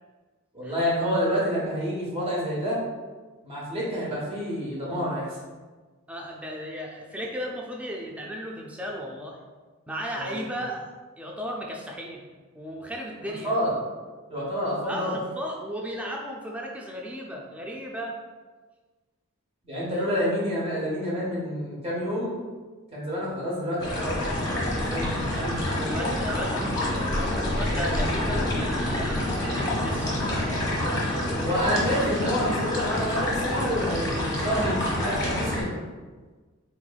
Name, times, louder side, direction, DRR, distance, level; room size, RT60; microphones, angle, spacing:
voice 1, 0.5-2.8 3.4-5.4 10.1-10.4 13.4-13.7 14.3-15.1 19.6-22.4 22.9-25.9 26.2-26.3 27.8-28.0 31.3-35.8, equal, 30° right, -6 dB, 1.0 m, -28 dB
voice 2, 6.1-9.4 9.9-10.9 11.2-12.2 12.5-13.6 14.8-18.2 19.9-20.1 25.8-30.2, equal, 5° right, -1 dB, 0.3 m, -35 dB
sound 1, 23.8-35.6, left 1 dB, 20° left, 0.9 m, -27 dB
4.0 x 3.0 x 2.2 m, 1.4 s
head